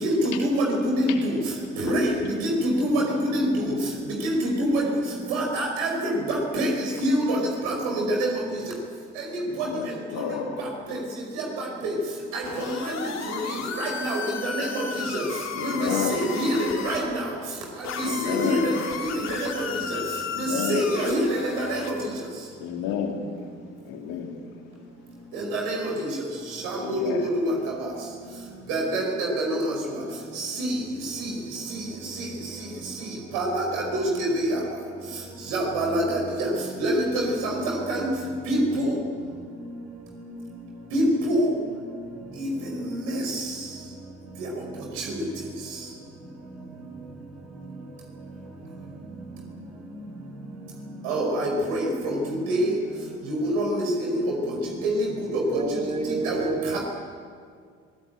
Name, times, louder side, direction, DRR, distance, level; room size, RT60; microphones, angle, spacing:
voice 1, 0.0-1.4 1.8-3.7 4.2-4.8 5.3-8.6 9.2-9.7 10.6-11.0 11.3-12.0 12.3-13.0 13.3-15.2 15.6-17.3 17.8-18.7 19.1-19.6 19.9-20.0 20.4-21.9 25.3-26.1 26.5-27.9 28.7-29.7 30.3-30.7 31.0-32.3 33.0-33.1 33.3-34.6 35.5-36.5 36.8-38.1 38.5-39.0 40.9-41.5 42.4-42.5 42.9-43.5 44.4-44.5 45.0-45.2 51.0-52.2 52.5-52.8 53.3-54.5 54.8-55.1 55.3-55.6 56.2-56.8, right 1 dB, 70° right, -1 dB, 5.2 m, -26 dB
voice 2, 9.6-10.5 15.6-16.2 18.0-18.7 20.3-20.8 22.6-23.2 23.9-24.3 26.8-27.3, left 8 dB, 65° left, 3 dB, 3.7 m, -30 dB
sound 1, 12.4-17.1 17.8-22.0, left 6 dB, 45° left, 3.7 m, -34 dB
voice 3, 55.5-56.8, right 4 dB, 15° right, 8 dB, 1.9 m, -29 dB
24.0 x 19.0 x 9.1 m, 2.1 s
figure-of-eight pair, 55°, 36 cm